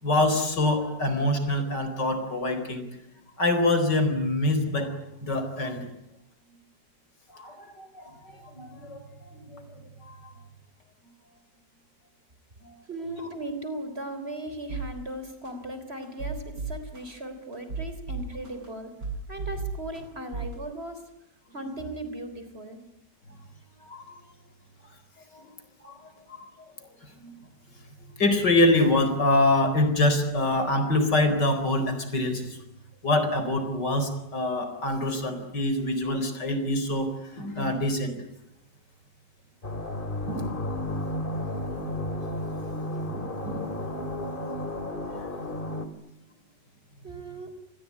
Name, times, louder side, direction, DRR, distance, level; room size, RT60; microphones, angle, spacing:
voice 1, 0.0-2.8 3.4-4.9 5.2-5.9 7.3-9.0 9.3-9.6 10.0-10.3 12.6-12.7 23.8-24.0 25.3-25.5 25.8-26.0 26.3-26.5 27.2-27.3 28.2-32.6 33.0-38.1 40.3-40.6 41.8-41.9 43.1-43.8 45.1-45.3, left 1 dB, 70° left, 9 dB, 4.9 m, -25 dB
voice 2, 12.9-18.9 19.3-21.0 21.5-22.8 47.0-47.5, right 1 dB, 35° right, 9 dB, 3.9 m, -37 dB
sound 1, 14.7-14.9 15.4-15.5 16.0-17.0 17.5-18.7 19.0-20.0 20.3-20.6, right 5 dB, 70° right, 8.4 m, -33 dB
sound 2, 39.6-45.9, left 1 dB, 30° left, 2.5 m, -33 dB
27.5 x 20.5 x 9.7 m, 0.82 s
omnidirectional pair, 1.9 m